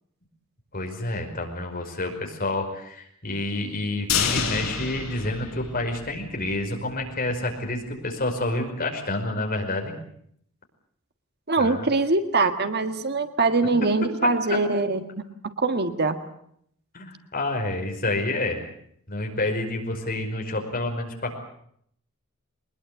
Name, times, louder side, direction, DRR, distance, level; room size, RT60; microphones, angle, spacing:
voice 1, 0.7-9.9 11.6-11.9 14.0-14.6 16.9-18.6 19.1-21.4, left 2 dB, 45° left, 3 dB, 5.1 m, -29 dB
sound 1, 4.1-6.2 6.6-6.7 7.0-7.1, left 6 dB, 70° left, 5.5 m, -28 dB
voice 2, 11.5-15.0 15.4-16.2, right 3 dB, 50° right, 8 dB, 1.7 m, -23 dB
22.5 x 21.0 x 8.3 m, 0.68 s
head